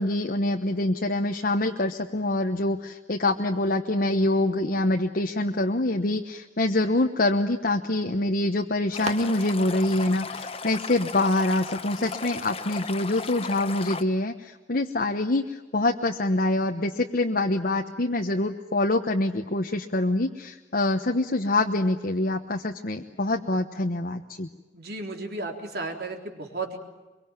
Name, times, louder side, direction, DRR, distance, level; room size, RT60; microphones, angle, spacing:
voice 1, 0.0-24.5, left 2 dB, 55° left, 3 dB, 1.1 m, -25 dB
sound 1, 8.1-13.2, right 3 dB, 40° right, 2.0 m, -44 dB
Stream, 8.9-14.0, left 4 dB, 35° left, 1.3 m, -36 dB
voice 2, 24.7-26.8, right 3 dB, 60° right, 3 dB, 3.7 m, -34 dB
24.0 x 23.5 x 9.0 m, 1.2 s
head